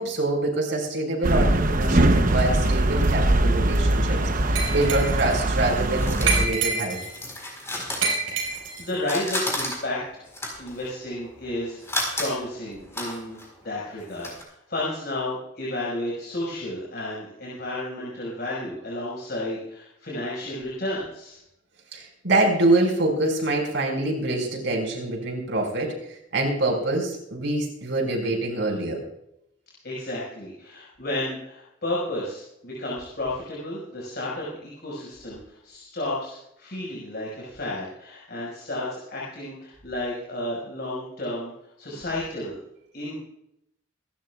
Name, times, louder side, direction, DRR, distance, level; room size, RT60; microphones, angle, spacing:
voice 1, 0.0-7.0 21.9-29.0, right 2 dB, 65° right, 0 dB, 5.5 m, -25 dB
sound 1, 1.2-6.5, right 1 dB, 45° right, 0.9 m, -21 dB
Glass, 4.6-5.3 6.3-7.2 8.0-8.9, right 4 dB, 80° right, 5.5 m, -27 dB
sound 2, 5.8-8.7 9.0-14.4, left 1 dB, 15° left, 4.4 m, -33 dB
voice 2, 8.2-10.2 10.6-13.4 13.6-21.4 29.8-34.5 34.8-41.5 41.8-42.5 42.9-43.1, left 1 dB, 55° left, -6 dB, 5.5 m, -32 dB
26.5 x 12.5 x 2.4 m, 0.78 s
head